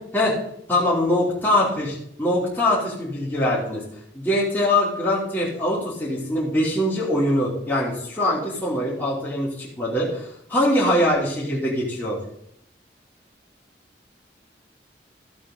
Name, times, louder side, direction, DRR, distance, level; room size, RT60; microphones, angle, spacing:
voice 1, 0.7-3.8 4.1-12.2, left 1 dB, 10° left, -8 dB, 3.3 m, -23 dB
14.0 x 8.4 x 3.9 m, 0.72 s
head